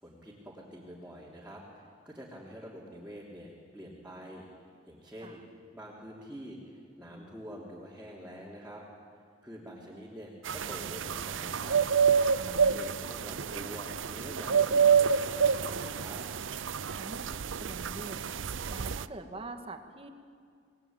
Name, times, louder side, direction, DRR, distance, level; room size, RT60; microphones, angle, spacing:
voice 1, 0.0-4.5 4.9-5.4 5.7-8.8 9.4-11.8 12.4-16.2, equal, 10° right, -6 dB, 3.6 m, -46 dB
sound 1, 10.5-19.1, right 6 dB, 85° right, 0.6 m, -28 dB
voice 2, 12.4-12.9 17.0-20.1, right 2 dB, 30° right, 5 dB, 2.1 m, -45 dB
28.0 x 20.0 x 9.1 m, 2.2 s
head